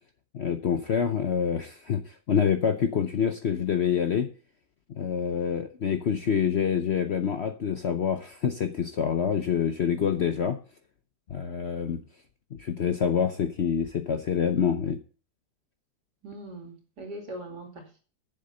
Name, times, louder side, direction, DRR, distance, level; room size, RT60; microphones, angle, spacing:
voice 1, 0.3-4.3 4.9-10.6 11.3-12.0 12.6-15.0, left 7 dB, 55° left, 6 dB, 0.8 m, -26 dB
voice 2, 16.2-18.0, right 1 dB, 70° right, 1 dB, 3.1 m, -41 dB
7.7 x 7.3 x 6.6 m, 0.39 s
omnidirectional pair, 1.8 m